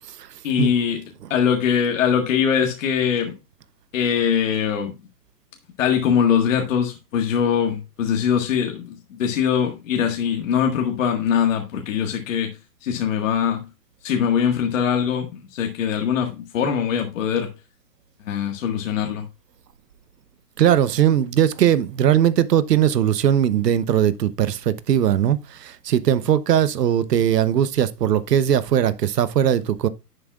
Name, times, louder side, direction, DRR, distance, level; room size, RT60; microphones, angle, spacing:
voice 1, 0.4-1.0 1.3-3.3 3.9-4.9 5.8-13.7 14.0-17.5 18.2-19.3, left 8 dB, 50° left, 1.7 m, -22 dB
voice 2, 20.6-29.9, right 10 dB, 75° right, 0.9 m, -19 dB
10.0 x 7.6 x 2.4 m
hypercardioid pair, 155°, 48 cm